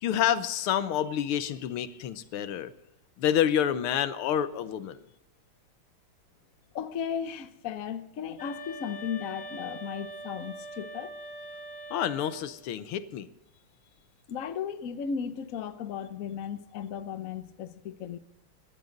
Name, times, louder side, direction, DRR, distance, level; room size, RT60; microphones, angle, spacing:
voice 1, 0.0-2.7 3.2-5.0 11.9-13.3, left 10 dB, 85° left, 1.7 m, -28 dB
voice 2, 6.7-11.1 14.3-18.2, left 7 dB, 55° left, 1.0 m, -35 dB
sound 1, 8.4-12.5, right 1 dB, 35° left, 2.7 m, -42 dB
17.0 x 12.0 x 3.9 m
omnidirectional pair, 2.3 m